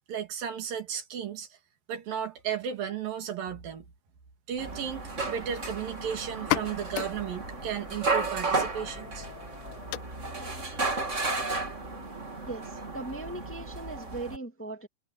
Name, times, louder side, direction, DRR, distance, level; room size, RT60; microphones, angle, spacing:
voice 1, 0.1-1.6 1.9-3.9 4.5-9.3, right 8 dB, 90° right, 4.3 m, -34 dB
sound 1, 4.6-14.4, right 3 dB, 25° right, 2.7 m, -33 dB
sound 2, 6.3-13.8, left 15 dB, 80° left, 2.2 m, -39 dB
voice 2, 12.3-14.9, right 2 dB, 5° left, 1.7 m, -39 dB
omnidirectional pair, 3.9 m